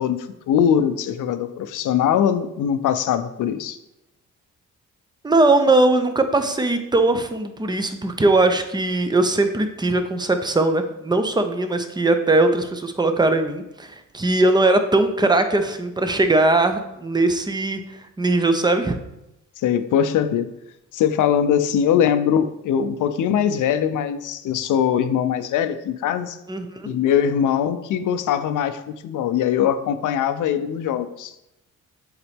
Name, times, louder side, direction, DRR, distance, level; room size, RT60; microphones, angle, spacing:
voice 1, 0.0-3.8 19.6-20.5 20.9-26.4 26.8-31.3, left 9 dB, 70° left, 10 dB, 0.5 m, -21 dB
voice 2, 5.2-19.0 26.5-26.9, right 2 dB, 15° right, 7 dB, 0.6 m, -20 dB
7.1 x 4.0 x 3.5 m, 0.87 s
cardioid pair, 105°, 31 cm